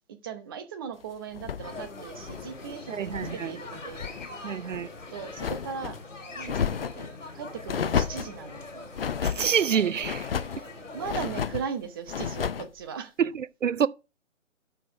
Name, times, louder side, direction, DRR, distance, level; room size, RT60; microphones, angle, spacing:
voice 1, 0.2-4.1 4.6-6.0 6.3-8.9 10.9-13.1, right 6 dB, 20° right, 0.7 m, -38 dB
sound 1, 1.3-3.4 3.7-4.3 4.7-6.0 6.4-7.1 7.7-8.4 8.9-9.5 10.0-10.6 11.0-11.7 12.1-12.7, left 7 dB, 50° left, 0.5 m, -32 dB
sound 2, 1.6-11.4, left 3 dB, 70° left, 2.5 m, -43 dB
voice 2, 2.9-3.6 4.4-4.9 9.2-10.3 13.2-13.9, right 8 dB, 75° right, 0.6 m, -27 dB
6.6 x 6.1 x 6.4 m
figure-of-eight pair, 140°, 39 cm